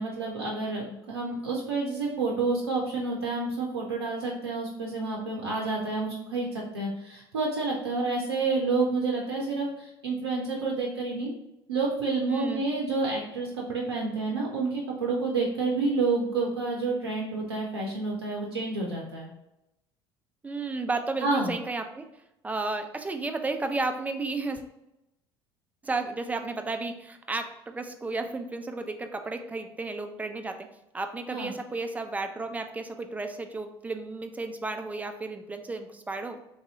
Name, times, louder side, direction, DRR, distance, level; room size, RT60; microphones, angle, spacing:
voice 1, 0.0-11.3 11.7-19.3 21.2-21.5 31.3-31.5, right 3 dB, 80° right, -2 dB, 0.5 m, -29 dB
voice 2, 12.3-12.6 20.4-22.1 22.4-24.6 25.8-30.7 30.9-36.4, right 3 dB, 10° right, 6 dB, 0.4 m, -33 dB
3.3 x 2.6 x 2.7 m, 0.88 s
figure-of-eight pair, 60°, 13 cm